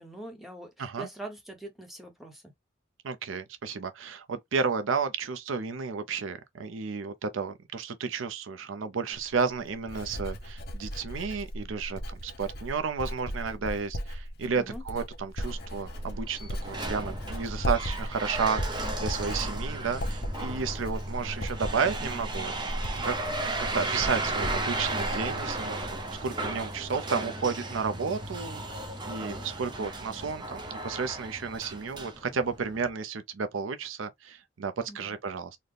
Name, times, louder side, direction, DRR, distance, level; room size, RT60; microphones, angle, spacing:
voice 1, 0.0-2.4 14.5-14.8 29.2-29.4 34.9-35.2, right 1 dB, ahead, 1.0 m, -43 dB
voice 2, 3.0-23.1 23.4-25.9 26.2-28.6 29.1-35.6, right 5 dB, 80° right, 0.6 m, -32 dB
Writing, 9.1-26.2 26.5-26.9, equal, 50° left, 0.9 m, -37 dB
sound 1, 15.4-32.9, right 2 dB, 20° right, 0.7 m, -35 dB
4.0 x 2.1 x 3.3 m
head